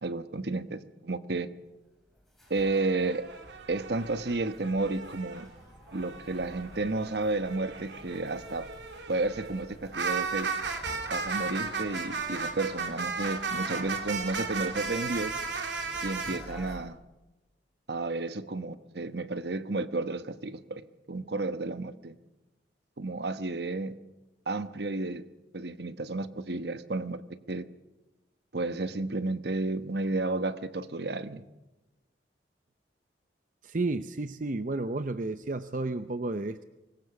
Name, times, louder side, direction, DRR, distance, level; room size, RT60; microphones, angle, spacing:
voice 1, 0.0-1.5 2.5-3.3 3.7-5.5 5.9-8.7 9.1-10.6 11.1-15.3 16.0-17.0 17.9-20.8 21.1-22.1 23.0-24.0 24.5-25.3 25.5-27.6 28.5-31.4, right 2 dB, 65° right, 11 dB, 1.1 m, -32 dB
sound 1, 1.7-16.8, equal, ahead, 6.7 m, -51 dB
sound 2, 2.5-5.4 5.9-16.4, right 4 dB, 85° right, 3.0 m, -35 dB
voice 2, 33.6-36.6, right 2 dB, 45° right, 10 dB, 0.7 m, -32 dB
24.5 x 20.5 x 7.0 m, 1.0 s
head